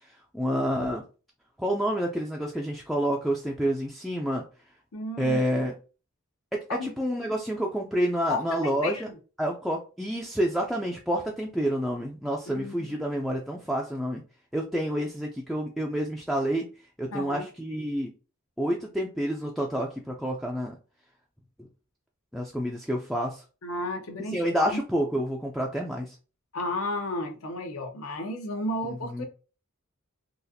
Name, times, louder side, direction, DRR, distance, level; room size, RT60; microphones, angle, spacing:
voice 1, 0.3-1.0 1.6-4.4 5.2-5.7 6.5-9.1 9.4-14.2 14.5-16.7 17.0-18.1 18.6-20.8 22.3-23.4 24.3-26.1 28.9-29.3, equal, ahead, -2 dB, 0.3 m, -28 dB
voice 2, 4.9-5.4 6.7-6.9 8.3-9.1 12.5-13.0 17.1-17.5 23.6-24.8 26.5-29.3, left 2 dB, 75° left, 4 dB, 0.8 m, -33 dB
4.0 x 2.4 x 2.6 m, 0.34 s
head